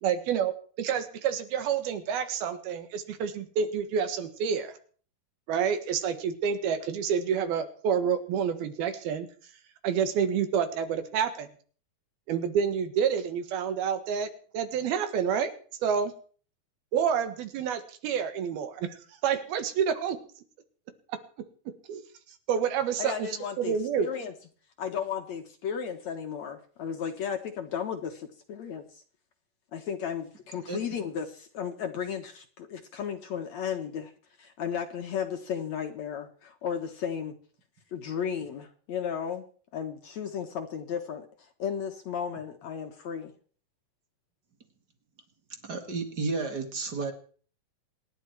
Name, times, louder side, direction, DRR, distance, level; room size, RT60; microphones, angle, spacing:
voice 1, 0.0-4.7 5.5-9.3 9.8-11.5 12.3-14.3 14.5-15.5 15.8-16.1 16.9-19.0 19.2-20.2 21.9-22.0 22.5-23.3 23.6-24.1, right 7 dB, 80° right, 9 dB, 3.5 m, -28 dB
voice 2, 23.0-24.3 24.8-29.0 29.7-34.1 34.4-37.4 37.9-39.5 39.7-43.3, left 7 dB, 60° left, 5 dB, 2.1 m, -34 dB
voice 3, 45.6-47.1, right 3 dB, 40° right, 7 dB, 1.7 m, -32 dB
26.5 x 11.0 x 4.6 m, 0.44 s
omnidirectional pair, 4.4 m